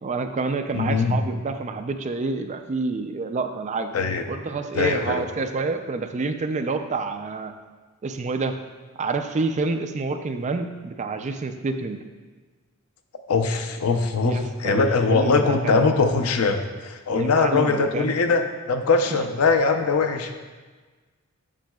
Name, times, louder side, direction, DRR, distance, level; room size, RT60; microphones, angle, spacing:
voice 1, 0.0-3.9 4.3-7.5 8.0-8.6 9.0-12.0 14.2-15.9 17.1-18.2 19.1-19.2, right 3 dB, 35° right, 7 dB, 0.4 m, -28 dB
voice 2, 0.7-1.2 3.9-4.3 4.7-5.2 13.3-20.3, left 4 dB, 85° left, 7 dB, 0.5 m, -21 dB
7.4 x 6.2 x 2.3 m, 1.3 s
head